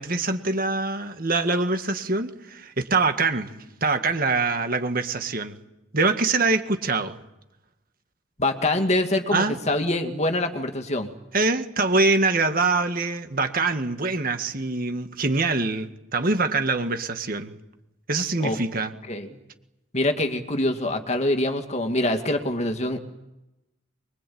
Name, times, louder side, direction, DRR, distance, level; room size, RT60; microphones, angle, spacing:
voice 1, 0.0-3.5 3.8-5.5 5.9-7.2 9.3-9.5 11.3-17.6 18.1-18.9, right 3 dB, 45° right, 7 dB, 1.9 m, -24 dB
voice 2, 8.4-11.1 18.4-18.6 19.1-19.3 19.9-23.0, left 1 dB, 35° left, 6 dB, 2.3 m, -24 dB
25.0 x 23.0 x 8.7 m, 0.91 s
head